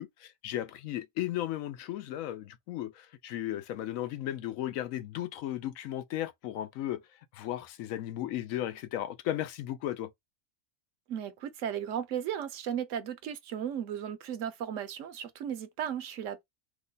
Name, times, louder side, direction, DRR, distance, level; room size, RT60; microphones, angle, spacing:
voice 1, 0.0-10.1, left 13 dB, 80° left, 1.0 m, -35 dB
voice 2, 11.1-16.4, right 9 dB, 70° right, 0.9 m, -35 dB
3.0 x 2.1 x 3.8 m
omnidirectional pair, 1.4 m